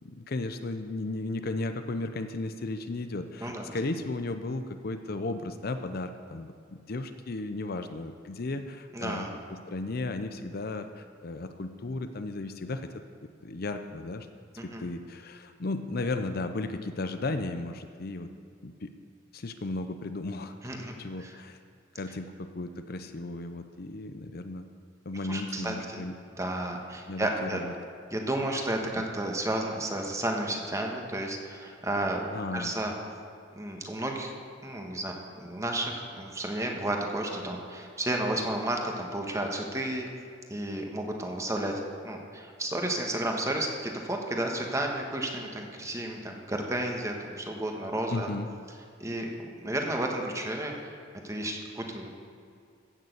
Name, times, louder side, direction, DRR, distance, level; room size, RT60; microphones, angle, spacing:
voice 1, 0.0-12.9 13.4-14.3 14.6-18.3 18.6-18.9 19.3-20.5 21.0-21.6 21.9-24.6 25.1-26.2 27.1-27.7 29.0-29.1 32.3-32.7 48.1-48.5, left 2 dB, 50° left, 8 dB, 0.6 m, -35 dB
voice 2, 8.9-9.4 14.6-14.8 20.6-20.9 21.2-21.3 25.3-26.0 26.4-27.6 28.1-32.3 32.5-32.9 33.5-34.3 34.6-40.1 40.5-48.3 49.0-50.9 51.2-52.1, right 1 dB, 15° right, 1 dB, 1.4 m, -32 dB
15.0 x 6.8 x 8.0 m, 2.3 s
head